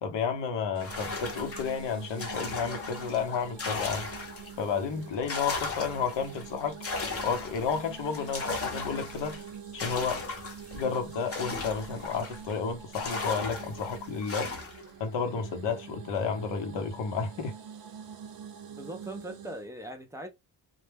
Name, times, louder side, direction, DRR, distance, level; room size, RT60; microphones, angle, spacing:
voice 1, 0.0-4.1 4.6-6.8 7.2-9.4 9.7-10.3 10.7-14.6 15.0-17.5, left 6 dB, 85° left, 0.8 m, -31 dB
sound 1, 0.7-19.7, right 7 dB, 60° right, 0.6 m, -45 dB
sound 2, 0.8-4.6 5.0-12.5 12.9-14.9, left 3 dB, 35° left, 0.7 m, -37 dB
voice 2, 18.7-20.3, right 1 dB, 10° right, 0.4 m, -40 dB
2.2 x 2.1 x 3.2 m
wide cardioid pair, 135°, 42 cm